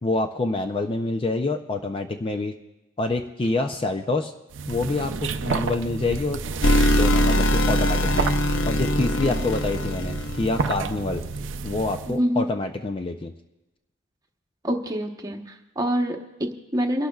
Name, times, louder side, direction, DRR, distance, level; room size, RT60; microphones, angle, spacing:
voice 1, 0.0-2.5 3.0-4.3 4.7-6.4 6.9-8.3 8.7-11.2 11.6-13.3, left 2 dB, 30° left, 6 dB, 0.4 m, -27 dB
sound 1, 4.5-12.2, right 4 dB, 75° right, 0.5 m, -31 dB
sound 2, 6.6-10.9, equal, 75° left, 0.8 m, -22 dB
voice 2, 12.1-12.5 14.6-17.1, equal, 20° right, 3 dB, 1.0 m, -26 dB
29.5 x 12.0 x 2.3 m, 0.96 s
head